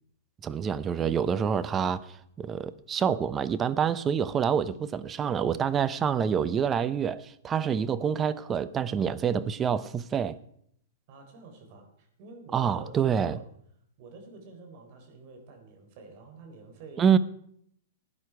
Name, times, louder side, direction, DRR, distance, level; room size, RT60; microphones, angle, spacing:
voice 1, 0.4-2.1 2.4-10.4 12.5-13.4 17.0-17.2, right 7 dB, 20° right, 0.7 m, -27 dB
voice 2, 11.1-13.4 14.0-17.1, right 3 dB, 50° right, 4.0 m, -48 dB
16.5 x 9.8 x 4.8 m
hypercardioid pair, 120°, 0 cm